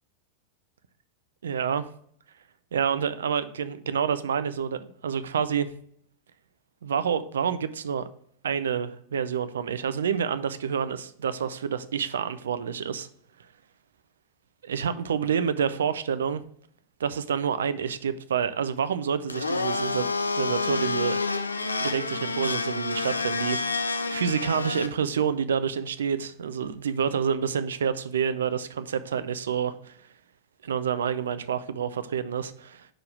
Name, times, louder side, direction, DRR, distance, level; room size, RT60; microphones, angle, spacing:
voice 1, 1.4-1.9 2.7-5.7 6.8-8.1 8.4-13.1 14.6-16.4 17.0-20.1 20.4-21.2 21.8-23.8 24.1-29.9 30.6-32.9, right 7 dB, 65° right, 0.5 m, -28 dB
Domestic sounds home sounds, 19.3-24.9, left 3 dB, 80° left, 0.5 m, -28 dB
5.1 x 4.7 x 6.1 m
figure-of-eight pair, 90°, 0 cm